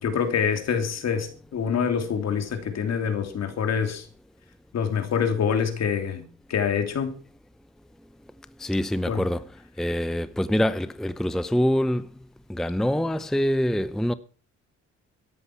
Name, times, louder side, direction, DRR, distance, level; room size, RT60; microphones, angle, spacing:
voice 1, 0.0-4.1 4.7-6.2 6.5-7.1 9.1-9.3, left 7 dB, 60° left, 3.0 m, -26 dB
voice 2, 8.6-9.4 9.8-12.1 12.5-14.1, equal, ahead, 0.6 m, -25 dB
14.0 x 11.0 x 5.9 m
cardioid pair, 90°, 30 cm